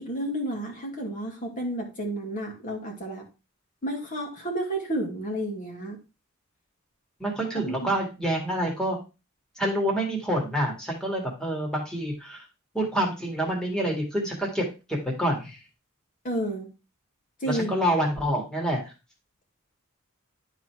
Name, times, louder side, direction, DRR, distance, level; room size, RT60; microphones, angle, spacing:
voice 1, 0.0-3.2 3.8-6.0 7.7-7.9 16.2-16.7 17.4-17.7, right 1 dB, 40° left, 1 dB, 2.2 m, -31 dB
voice 2, 7.2-9.0 9.6-12.4 12.7-15.6 17.5-18.9, right 1 dB, 5° left, -1 dB, 2.1 m, -27 dB
11.0 x 4.1 x 4.6 m, 0.29 s
head